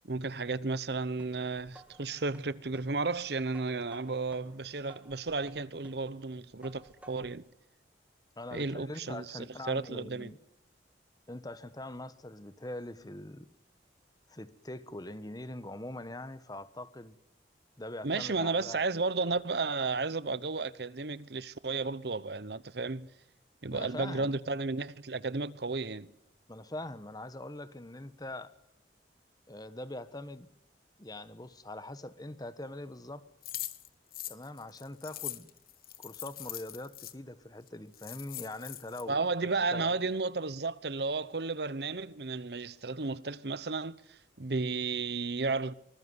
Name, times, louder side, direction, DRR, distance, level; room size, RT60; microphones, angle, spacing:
voice 1, 0.1-7.4 8.5-10.3 18.0-23.1 23.6-26.1 39.1-45.7, right 3 dB, 65° right, 0.9 m, -33 dB
sound 1, 1.2-7.5, right 1 dB, 10° right, 2.2 m, -55 dB
voice 2, 8.4-10.4 11.3-13.5 14.3-17.2 17.8-18.9 23.7-24.3 26.5-28.5 29.5-30.5 31.0-33.3 34.3-35.5 36.0-39.2 39.7-39.9, left 1 dB, 20° left, 1.3 m, -43 dB
sound 2, 33.4-37.1 37.7-37.8 37.9-39.0, left 14 dB, 55° left, 1.5 m, -42 dB
24.5 x 20.5 x 9.6 m
head